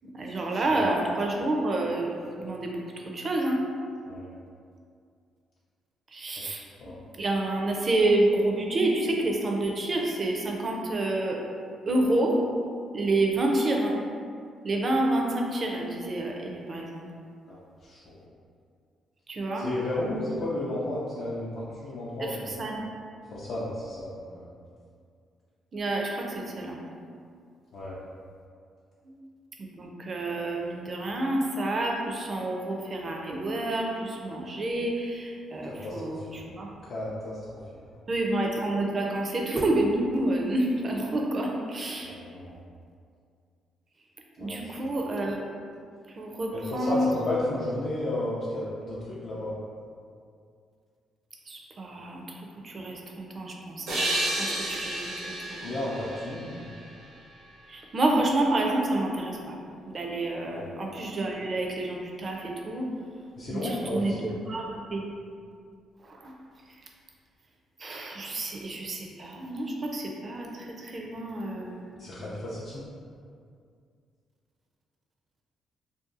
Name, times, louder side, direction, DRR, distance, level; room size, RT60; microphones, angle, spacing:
voice 1, 0.1-2.8 3.1-3.6 6.1-6.6 7.1-11.4 11.9-12.4 12.9-14.0 14.6-17.0 19.3-19.7 22.2-22.9 25.7-26.8 29.0-29.1 29.6-36.7 38.1-42.1 44.4-45.4 46.1-47.1 51.5-52.4 52.6-54.0 54.4-55.7 57.7-59.6 59.9-62.8 63.5-65.1 66.0-66.3 67.8-71.9, right 2 dB, 40° right, 0 dB, 0.4 m, -29 dB
voice 2, 17.5-18.2 19.5-22.6 23.3-24.5 27.7-28.0 35.6-36.3 36.8-37.4 42.0-42.6 44.4-44.7 46.5-49.6 55.6-56.7 60.4-60.7 63.4-64.3 72.0-72.8, left 1 dB, 65° left, -8 dB, 0.4 m, -33 dB
sound 1, 53.9-57.4, right 1 dB, 85° right, 0.7 m, -32 dB
2.6 x 2.2 x 2.5 m, 2.3 s
cardioid pair, 90°, 0 cm